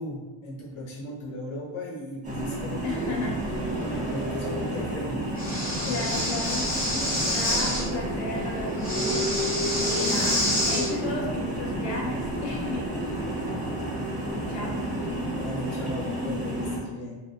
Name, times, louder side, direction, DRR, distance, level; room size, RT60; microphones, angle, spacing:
voice 1, 0.0-3.2 3.8-5.1 5.7-6.2 15.3-17.2, left 1 dB, 85° left, -5 dB, 1.1 m, -37 dB
sound 1, 2.2-16.8, right 1 dB, 15° right, 0.5 m, -30 dB
voice 2, 2.8-3.8 5.9-6.7 7.3-9.3 9.9-10.4 10.7-13.2 14.5-14.8, left 3 dB, 40° left, -2 dB, 0.5 m, -34 dB
Breathing, 5.4-7.8 8.8-10.9, left 1 dB, 20° left, 0.9 m, -27 dB
2.5 x 2.4 x 2.4 m, 1.2 s
cardioid pair, 145°, 50 cm